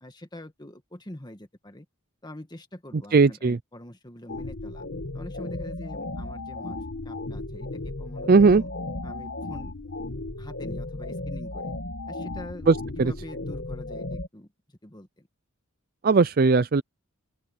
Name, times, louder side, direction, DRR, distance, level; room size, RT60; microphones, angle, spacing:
voice 1, 0.0-1.9 2.2-4.9 5.1-8.7 9.0-9.8 10.4-11.8 12.1-15.3, left 1 dB, 20° left, 1.8 m, -44 dB
voice 2, 3.1-3.6 8.3-8.6 12.7-13.1 16.0-16.8, right 4 dB, 40° right, 0.4 m, -18 dB
sound 1, 4.3-14.3, left 2 dB, 55° left, 1.5 m, -35 dB
open air
head